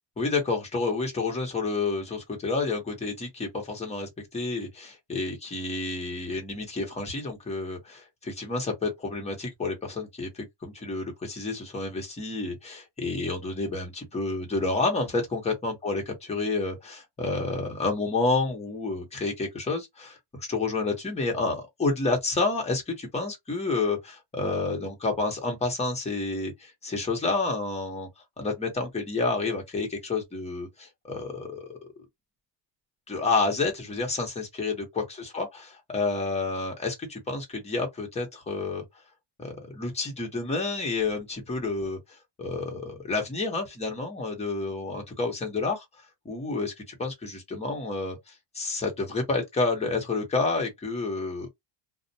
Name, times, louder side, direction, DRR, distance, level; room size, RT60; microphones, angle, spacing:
voice 1, 0.2-16.0 16.3-20.2 20.5-28.1 28.4-31.8 33.1-38.8 39.4-45.8 46.2-46.7 47.0-48.2 48.5-51.5, left 3 dB, 15° left, 0.9 m, -29 dB
2.4 x 2.1 x 2.7 m
cardioid pair, 145°, 49 cm